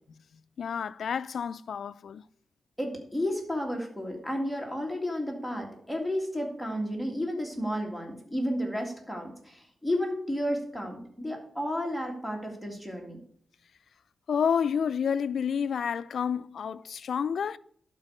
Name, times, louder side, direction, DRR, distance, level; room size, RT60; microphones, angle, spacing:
voice 1, 0.6-2.2 14.3-17.6, left 7 dB, 70° left, 0.4 m, -29 dB
voice 2, 2.8-13.2, equal, ahead, 2.0 m, -32 dB
11.5 x 4.5 x 6.6 m
wide cardioid pair, 100°, 0 cm